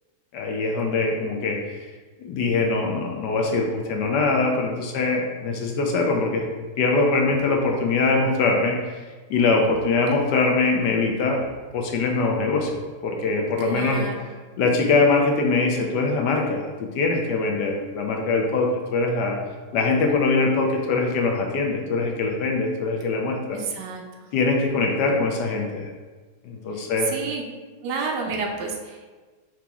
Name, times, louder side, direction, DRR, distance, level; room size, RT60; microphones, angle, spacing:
voice 1, 0.3-1.6 2.2-6.5 6.8-8.8 9.3-11.4 11.7-14.1 14.6-19.4 19.7-23.6 24.3-25.9 26.4-27.1, left 3 dB, 70° left, 1 dB, 1.2 m, -22 dB
voice 2, 13.6-14.3 23.5-24.0 26.7-26.8 27.1-27.4 27.8-29.1, right 4 dB, 70° right, 1 dB, 1.2 m, -30 dB
5.0 x 3.0 x 3.5 m, 1.3 s
omnidirectional pair, 2.0 m